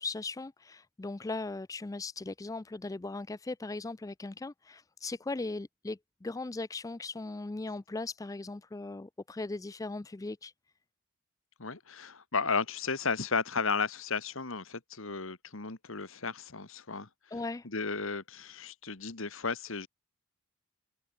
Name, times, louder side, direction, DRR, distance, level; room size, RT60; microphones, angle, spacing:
voice 1, 0.0-10.5 17.3-17.7, left 3 dB, 15° left, 0.3 m, -38 dB
voice 2, 11.6-17.1 17.6-19.9, left 4 dB, 65° left, 1.7 m, -34 dB
head